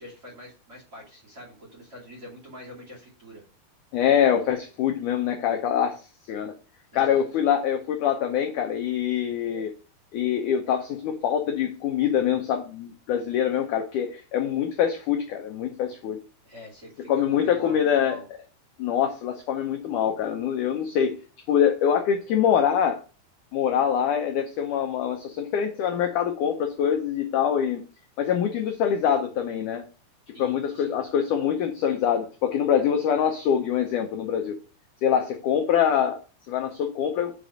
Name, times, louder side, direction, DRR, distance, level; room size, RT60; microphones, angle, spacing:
voice 1, 0.0-3.4 6.9-7.2 16.4-18.2 30.3-31.0, equal, 25° right, -4 dB, 2.5 m, -45 dB
voice 2, 3.9-6.5 6.9-9.7 10.1-16.2 17.1-18.2 18.8-21.2 21.5-23.0 23.5-27.8 28.2-29.8 30.4-34.6 35.0-36.2 36.5-37.3, left 8 dB, 80° left, 4 dB, 1.8 m, -24 dB
5.2 x 5.1 x 6.2 m, 0.36 s
omnidirectional pair, 4.5 m